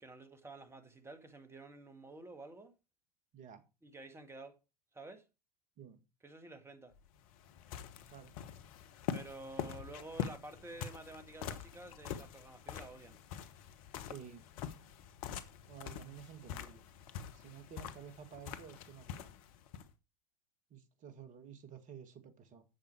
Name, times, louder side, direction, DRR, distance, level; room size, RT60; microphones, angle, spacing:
voice 1, 0.0-2.7 3.8-4.6 4.9-5.2 6.2-6.9 9.1-13.2, right 2 dB, 10° right, 2.0 m, -50 dB
sound 1, 6.9-19.9, left 9 dB, 55° left, 1.2 m, -45 dB
voice 2, 14.1-14.5 15.7-16.8 17.3-19.3 20.7-22.6, right 8 dB, 40° right, 1.9 m, -52 dB
11.0 x 7.1 x 4.7 m
figure-of-eight pair, 80°, 21 cm